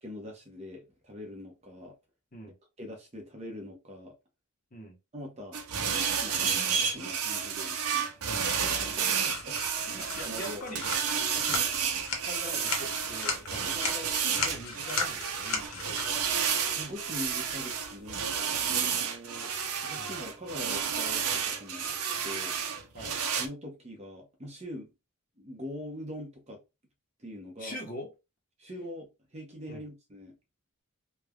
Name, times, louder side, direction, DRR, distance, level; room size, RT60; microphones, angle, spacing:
voice 1, 0.0-1.9 2.8-4.1 5.1-8.0 8.6-9.6 9.8-10.8 16.5-18.3 18.6-19.6 19.8-21.9 22.2-22.5 23.4-24.9 25.4-26.6 27.2-27.8 28.6-30.3, left 1 dB, 30° right, 0.8 m, -43 dB
sound 1, 5.5-23.5, right 7 dB, 75° right, 0.6 m, -31 dB
voice 2, 7.7-9.0 9.7-10.9 11.3-11.9 12.2-16.0 19.9-20.2 22.9-23.2 27.6-28.1 29.7-29.8, equal, 40° left, 0.7 m, -44 dB
sound 2, 9.2-18.3, left 4 dB, 70° left, 0.9 m, -38 dB
3.3 x 2.2 x 2.3 m
head